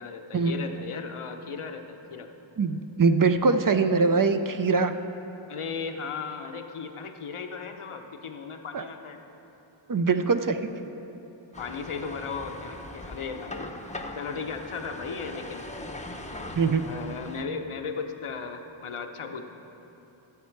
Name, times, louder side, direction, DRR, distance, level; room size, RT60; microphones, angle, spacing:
voice 1, 0.0-2.3 5.5-9.2 11.6-13.7 14.1-15.7 16.1-16.3 16.8-19.4, left 5 dB, 85° left, 5 dB, 0.8 m, -36 dB
voice 2, 2.6-4.9 8.7-8.8 9.9-10.7 16.6-16.8, right 4 dB, 45° right, 9 dB, 0.5 m, -23 dB
sound 1, 11.5-17.5, left 2 dB, 15° left, 0.7 m, -40 dB
14.5 x 7.4 x 4.6 m, 3.0 s
wide cardioid pair, 80°, 49 cm